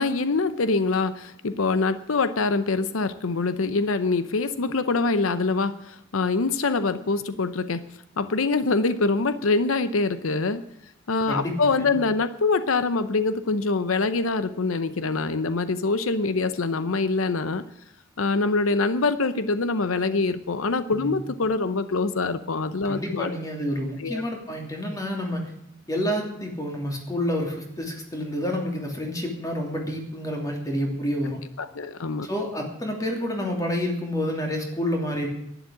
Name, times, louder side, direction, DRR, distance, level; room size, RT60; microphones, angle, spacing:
voice 1, 0.0-7.8 8.2-10.6 11.1-17.6 18.2-23.3 24.0-24.2 31.6-32.3, left 3 dB, 85° left, 12 dB, 0.7 m, -24 dB
voice 2, 11.3-11.9 20.9-21.2 22.8-25.5 25.9-31.4 32.2-35.3, equal, 15° left, 1 dB, 2.9 m, -29 dB
11.5 x 10.5 x 8.3 m, 0.79 s
head